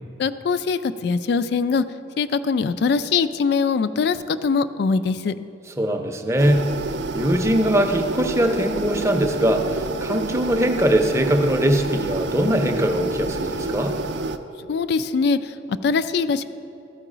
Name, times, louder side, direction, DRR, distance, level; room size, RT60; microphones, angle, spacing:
voice 1, 0.2-1.8 2.2-5.3 14.7-15.5 15.8-16.4, left 5 dB, 60° left, 13 dB, 0.3 m, -22 dB
voice 2, 5.8-6.7 7.1-14.0, equal, 15° right, 4 dB, 0.5 m, -21 dB
sound 1, 6.4-14.4, right 3 dB, 60° right, 0.4 m, -28 dB
14.0 x 4.6 x 5.0 m, 2.8 s
head